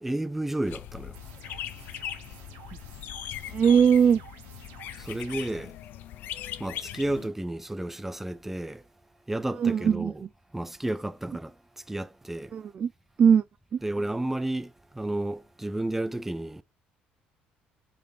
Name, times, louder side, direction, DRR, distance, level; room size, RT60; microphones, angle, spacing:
voice 1, 0.0-1.2 5.0-5.8 6.6-8.8 9.3-10.2 10.5-12.5 13.8-16.6, right 1 dB, 10° right, 0.7 m, -32 dB
sound 1, 0.6-7.3, left 12 dB, 70° left, 0.8 m, -40 dB
sound 2, 1.1-5.5, right 9 dB, 90° right, 1.4 m, -51 dB
voice 2, 3.5-4.2 9.6-10.1 12.5-12.9 13.2-13.4 13.7-13.8, right 7 dB, 40° right, 0.4 m, -20 dB
6.9 x 5.2 x 3.5 m
cardioid pair, 95°, 3 cm